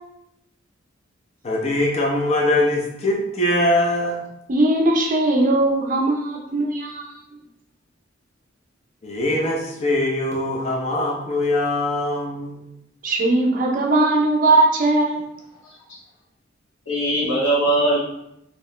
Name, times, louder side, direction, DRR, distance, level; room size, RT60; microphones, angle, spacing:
voice 1, 1.4-4.2 9.0-12.7, left 1 dB, 35° left, -2 dB, 0.5 m, -22 dB
voice 2, 4.5-7.1 13.0-15.3, right 2 dB, 45° right, 0 dB, 0.6 m, -19 dB
voice 3, 15.6-16.0 16.8-18.0, right 1 dB, 85° left, -7 dB, 1.4 m, -21 dB
2.9 x 2.7 x 3.1 m, 0.82 s
head